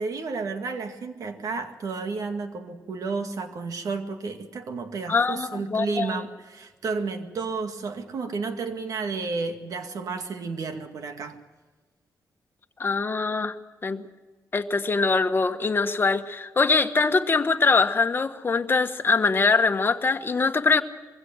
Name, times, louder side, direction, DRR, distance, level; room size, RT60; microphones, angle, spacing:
voice 1, 0.0-11.4, right 4 dB, 70° right, 6 dB, 2.2 m, -32 dB
voice 2, 5.1-6.2 12.8-13.5 13.8-14.0 14.5-20.8, left 4 dB, 35° left, 7 dB, 1.4 m, -23 dB
23.0 x 16.5 x 7.7 m, 1.3 s
cardioid pair, 90°, 6 cm